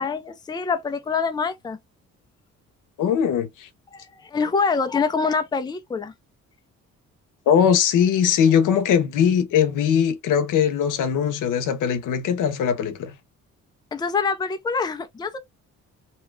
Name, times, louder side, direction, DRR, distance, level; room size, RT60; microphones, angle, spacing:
voice 1, 0.0-1.8 3.9-6.1 13.9-15.4, left 5 dB, 15° left, 0.4 m, -25 dB
voice 2, 3.0-3.7 7.5-13.2, left 8 dB, 85° left, 0.8 m, -20 dB
2.8 x 2.3 x 3.2 m
cardioid pair, 115°, 30 cm